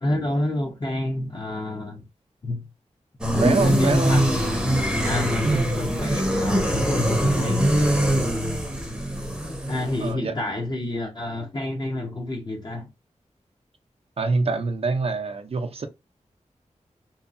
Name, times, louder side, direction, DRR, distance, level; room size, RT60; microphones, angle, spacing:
voice 1, 0.0-2.0 2.4-2.6 3.3-4.3 5.0-8.1 9.7-12.9, left 1 dB, 35° left, 0.8 m, -28 dB
sound 1, 3.2-10.1, equal, 5° right, 0.7 m, -23 dB
voice 2, 3.4-4.2 5.4-5.8 10.0-10.3 14.2-15.9, right 3 dB, 50° right, 0.5 m, -25 dB
2.8 x 2.3 x 2.5 m
wide cardioid pair, 85°, 12 cm